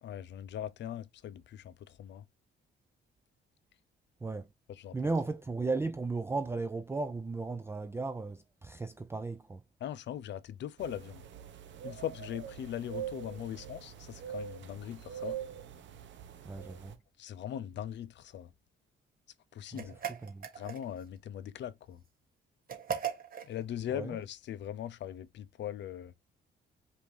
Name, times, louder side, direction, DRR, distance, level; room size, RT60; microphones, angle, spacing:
voice 1, 0.0-2.2 4.8-5.0 9.8-11.2 11.8-15.4 17.2-18.5 19.5-20.0 20.6-22.0 23.5-26.1, left 10 dB, 65° left, 0.5 m, -40 dB
voice 2, 4.9-9.6 16.4-16.9 19.7-20.5 23.9-24.2, right 3 dB, 10° right, 0.4 m, -35 dB
sound 1, 10.8-16.9, right 10 dB, 70° right, 0.9 m, -44 dB
sound 2, 19.7-21.1 22.7-23.5, right 8 dB, 45° right, 1.3 m, -38 dB
5.2 x 2.7 x 3.1 m
cardioid pair, 90°, 20 cm